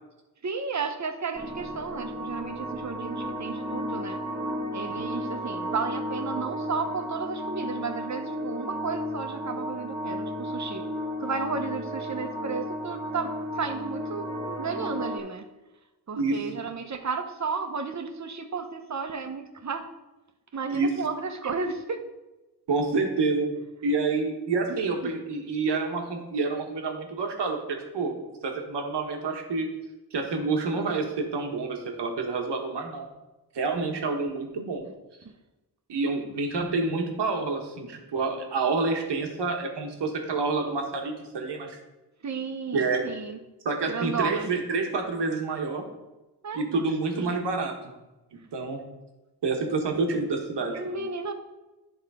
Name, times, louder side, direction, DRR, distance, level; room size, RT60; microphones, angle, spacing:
voice 1, 0.4-4.2 4.7-10.8 11.2-15.5 16.1-19.9 20.5-22.0 25.0-25.1 42.2-43.4 43.9-44.5 46.4-46.8 50.7-51.3, right 5 dB, 45° right, 7 dB, 0.9 m, -33 dB
sound 1, 1.3-15.2, equal, 20° right, 1.3 m, -33 dB
voice 2, 22.7-23.5 23.8-29.7 30.1-33.1 33.5-34.8 35.9-41.8 42.7-43.1 43.6-45.8 46.5-47.7 48.5-48.8 49.4-50.8, right 3 dB, 85° right, 2 dB, 1.4 m, -28 dB
11.0 x 3.6 x 4.9 m, 1.1 s
cardioid pair, 65°, 40 cm